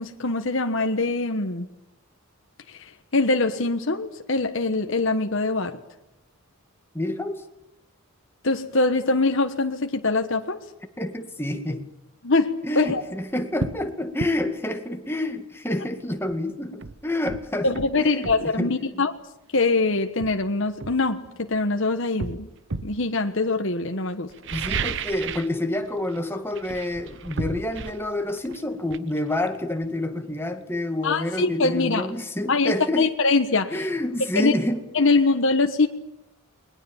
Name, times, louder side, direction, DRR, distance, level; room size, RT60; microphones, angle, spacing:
voice 1, 0.0-1.7 2.7-5.8 8.4-10.6 12.2-13.0 17.6-19.1 19.5-22.5 22.8-24.3 31.0-32.1 32.5-33.8 34.3-34.5 34.9-35.9, left 3 dB, 60° left, 5 dB, 1.3 m, -23 dB
voice 2, 6.9-7.4 11.0-11.9 12.7-17.7 18.0-18.3 18.6-19.0 24.5-33.1 33.7-34.8, left 1 dB, 10° left, 5 dB, 2.0 m, -28 dB
sound 1, 12.8-13.0 13.6-13.8 14.2-14.4 16.3-16.4 16.8-18.5 19.5-19.7 20.2-21.6 22.2-23.0 24.3-25.6 25.8-26.2 26.5-30.1 30.4-30.5, right 4 dB, 55° right, 0.9 m, -33 dB
29.0 x 21.5 x 7.3 m, 0.86 s
head